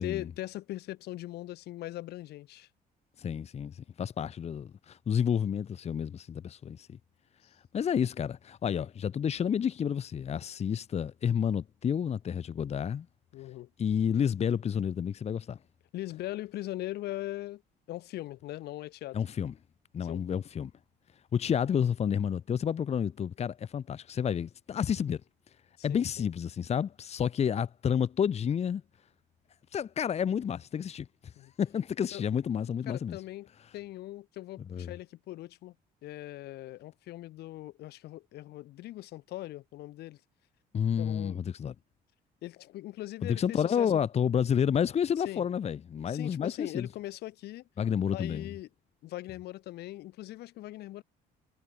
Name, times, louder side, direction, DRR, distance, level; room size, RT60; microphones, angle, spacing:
voice 1, 0.0-2.7 13.3-13.7 15.9-17.6 17.9-19.2 20.0-20.2 25.8-26.3 31.4-31.5 32.1-32.2 32.9-33.5 33.7-35.7 36.0-40.2 41.0-41.4 42.4-43.9 45.2-45.5 46.1-47.6 48.1-48.7 49.0-51.0, left 16 dB, 75° left, 2.0 m, -40 dB
voice 2, 3.2-7.0 7.7-13.1 13.8-15.6 19.1-19.5 19.9-20.7 21.3-25.2 25.8-28.8 29.7-31.1 31.6-33.2 34.7-34.9 40.7-41.7 43.2-46.9 47.8-48.5, left 8 dB, 40° left, 1.1 m, -30 dB
cardioid pair, 110°, 17 cm